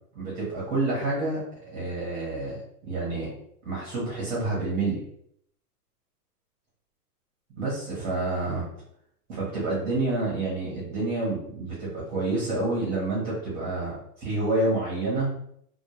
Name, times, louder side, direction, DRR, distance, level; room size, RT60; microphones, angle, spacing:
voice 1, 0.2-1.4 1.7-2.6 2.9-3.3 3.6-5.0 7.6-8.6 9.3-15.3, right 2 dB, 20° right, -6 dB, 0.7 m, -28 dB
2.1 x 2.1 x 2.9 m, 0.69 s
hypercardioid pair, 140°, 47 cm